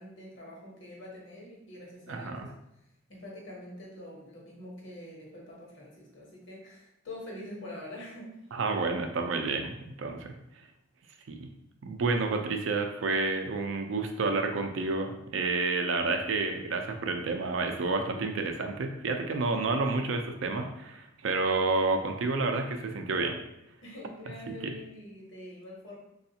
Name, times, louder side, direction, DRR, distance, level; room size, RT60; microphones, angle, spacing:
voice 1, 0.0-2.5 3.1-8.4 23.8-26.0, left 1 dB, 65° left, -3 dB, 1.0 m, -45 dB
voice 2, 2.1-2.5 8.5-10.3 11.3-11.5 11.8-23.3 24.6-24.7, right 3 dB, 75° right, 4 dB, 0.4 m, -30 dB
3.3 x 2.3 x 2.7 m, 0.82 s
head